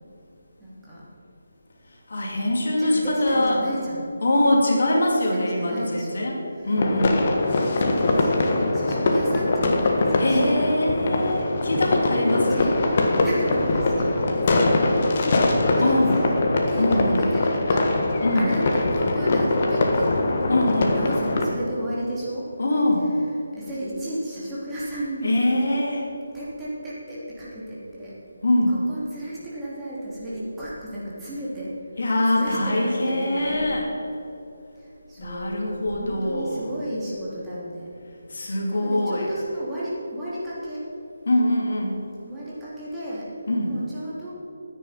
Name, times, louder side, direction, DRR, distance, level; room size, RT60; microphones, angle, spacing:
voice 1, 0.6-1.1 2.2-2.5 2.8-4.1 5.1-6.7 7.7-10.7 12.3-12.7 13.2-15.5 15.9-16.3 16.7-18.1 18.3-20.2 20.9-22.5 23.5-25.3 26.3-28.1 28.7-31.7 32.3-33.6 34.7-37.9 38.7-40.8 42.2-43.3 43.7-44.3, right 1 dB, 10° right, -9 dB, 3.3 m, -33 dB
voice 2, 2.1-3.6 4.2-7.3 10.2-12.6 15.8-16.2 16.8-17.2 18.2-18.5 20.5-21.0 22.6-23.1 25.2-26.1 28.4-28.7 32.0-33.9 35.2-36.7 38.3-39.3 41.3-42.0 43.5-43.7, left 1 dB, 60° left, 0 dB, 2.7 m, -23 dB
sound 1, 6.8-21.5, left 2 dB, 40° left, 1.6 m, -22 dB
13.5 x 9.7 x 5.9 m, 2.9 s
figure-of-eight pair, 155°, 0 cm